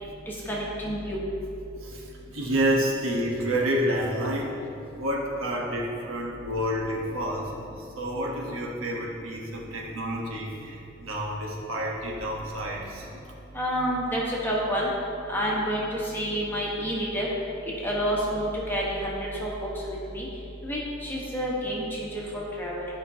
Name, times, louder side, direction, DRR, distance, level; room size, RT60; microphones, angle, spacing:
voice 1, 0.5-1.2 13.5-14.9 15.3-17.3 17.8-19.1 19.4-19.5 20.1-20.3 20.6-22.9, equal, 10° left, -5 dB, 1.2 m, -29 dB
voice 2, 1.7-4.5 4.9-13.1, equal, 80° right, -2 dB, 1.2 m, -29 dB
12.0 x 5.2 x 2.8 m, 2.7 s
head